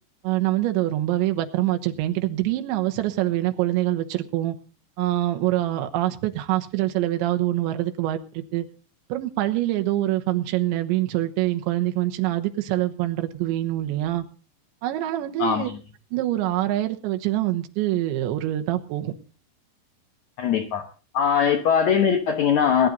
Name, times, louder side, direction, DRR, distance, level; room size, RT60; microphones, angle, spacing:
voice 1, 0.2-4.5 5.0-8.7 9.1-14.2 14.8-15.7 16.1-19.1, right 15 dB, 90° right, 6 dB, 3.4 m, -25 dB
voice 2, 15.4-15.7 20.4-20.8 21.1-22.9, left 7 dB, 70° left, 3 dB, 1.7 m, -21 dB
20.5 x 10.0 x 3.9 m, 0.35 s
omnidirectional pair, 5.1 m